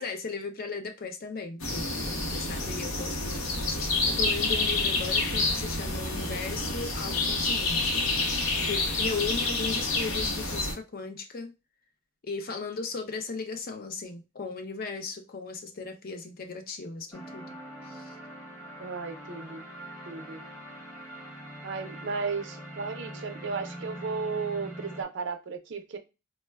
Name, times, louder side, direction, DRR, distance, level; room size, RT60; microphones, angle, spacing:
voice 1, 0.0-8.1 8.6-11.5 12.2-17.6 17.8-18.2, left 4 dB, 45° left, 0.4 m, -37 dB
sound 1, 1.6-10.7, left 3 dB, 75° left, 0.7 m, -28 dB
sound 2, 17.1-25.0, right 1 dB, 15° left, 0.9 m, -43 dB
voice 2, 18.8-19.6 20.1-20.4 21.6-26.0, right 4 dB, 55° right, 0.5 m, -34 dB
4.2 x 2.1 x 2.2 m
head